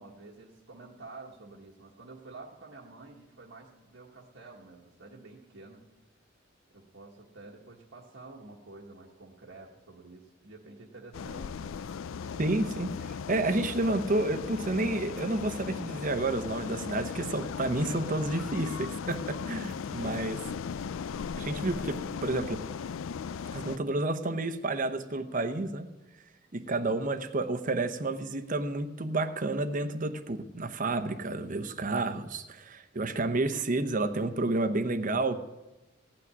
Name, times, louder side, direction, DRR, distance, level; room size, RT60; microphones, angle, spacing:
voice 1, 0.0-5.9 6.7-11.8 12.1-12.7 19.9-20.5 26.6-26.9, right 3 dB, 70° right, -2 dB, 1.4 m, -49 dB
sound 1, 11.1-23.8, left 6 dB, 80° left, 0.4 m, -37 dB
voice 2, 12.4-12.9 13.3-20.4 21.4-22.6 23.5-25.9 26.5-35.4, right 2 dB, 40° right, 9 dB, 0.9 m, -30 dB
16.5 x 6.0 x 9.5 m, 1.1 s
head